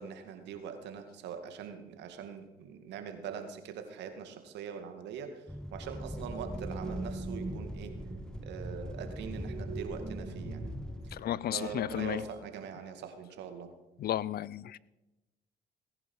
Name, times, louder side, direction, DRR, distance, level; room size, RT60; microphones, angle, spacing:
voice 1, 0.0-5.4 5.7-7.9 8.4-10.6 11.0-11.2 11.5-13.7, right 7 dB, 80° right, 2.1 m, -42 dB
sound 1, 5.5-11.2, left 1 dB, 5° left, 0.9 m, -41 dB
sound 2, 5.8-12.3, right 3 dB, 50° right, 1.9 m, -44 dB
voice 2, 11.1-12.2 14.0-14.8, left 12 dB, 60° left, 0.6 m, -33 dB
19.0 x 11.0 x 5.5 m
supercardioid pair, 55°, 18 cm